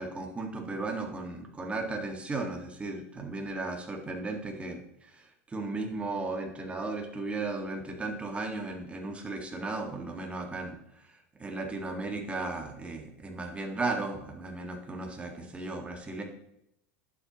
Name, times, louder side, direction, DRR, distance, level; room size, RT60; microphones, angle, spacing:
voice 1, 0.0-5.2 5.5-10.8 11.4-16.2, right 3 dB, 15° right, 2 dB, 1.9 m, -35 dB
11.5 x 7.8 x 3.0 m, 0.80 s
hypercardioid pair, 110°, 8 cm